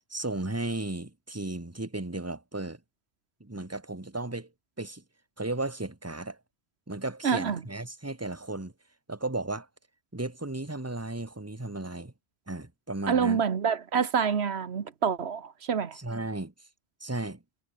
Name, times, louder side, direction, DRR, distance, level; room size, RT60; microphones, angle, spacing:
voice 1, 0.1-2.8 3.4-4.5 4.8-5.0 5.4-6.4 6.9-8.7 9.1-9.7 10.1-12.1 12.5-13.4 15.9-16.5 17.0-17.4, right 2 dB, 15° right, 1.7 m, -34 dB
voice 2, 7.2-7.6 13.1-16.0, right 6 dB, 85° right, 1.5 m, -27 dB
omnidirectional pair, 1.1 m